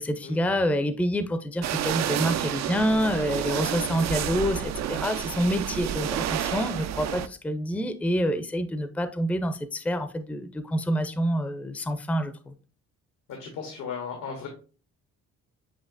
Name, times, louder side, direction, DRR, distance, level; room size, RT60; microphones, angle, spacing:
voice 1, 0.0-12.5, equal, 5° left, 10 dB, 0.5 m, -27 dB
sound 1, 1.6-7.3, right 10 dB, 65° right, 0.4 m, -30 dB
voice 2, 13.3-14.5, left 6 dB, 90° left, 2 dB, 1.2 m, -36 dB
7.5 x 2.9 x 2.5 m, 0.38 s
cardioid pair, 90°, 30 cm